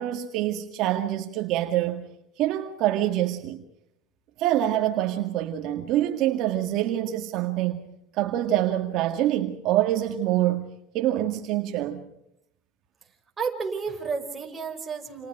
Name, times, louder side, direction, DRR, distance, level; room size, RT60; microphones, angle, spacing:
voice 1, 0.0-2.0 2.4-3.6 4.4-7.8 8.1-10.7 10.9-12.0, right 13 dB, 60° right, 2.0 m, -25 dB
voice 2, 13.4-15.3, right 5 dB, 15° right, 5.5 m, -31 dB
30.0 x 28.5 x 4.9 m
cardioid pair, 130°, 0 cm